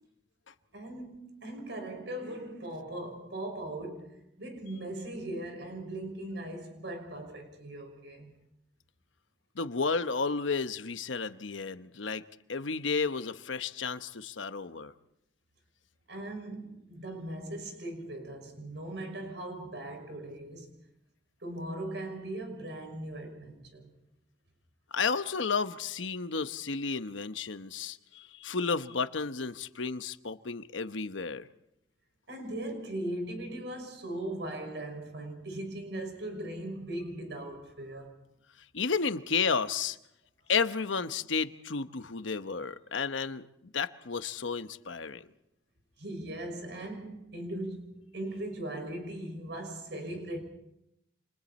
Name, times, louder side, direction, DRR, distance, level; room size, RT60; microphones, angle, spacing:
voice 1, 0.7-8.3 16.1-20.7 21.4-23.9 32.3-38.2 46.0-50.4, right 1 dB, 65° right, 5.9 m, -39 dB
voice 2, 9.5-12.2 12.5-14.9 24.9-31.5 38.7-40.0 40.5-45.2, left 5 dB, 85° left, 0.9 m, -32 dB
29.5 x 27.0 x 4.3 m
head